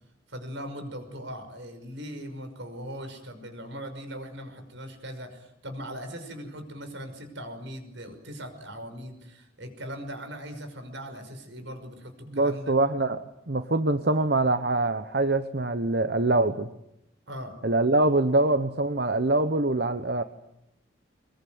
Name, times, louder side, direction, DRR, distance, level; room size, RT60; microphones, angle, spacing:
voice 1, 0.3-12.8 17.3-17.6, equal, 80° right, 6 dB, 5.8 m, -39 dB
voice 2, 12.3-16.7 17.6-20.2, right 2 dB, 55° right, 10 dB, 1.0 m, -24 dB
23.5 x 22.0 x 9.5 m, 0.84 s
head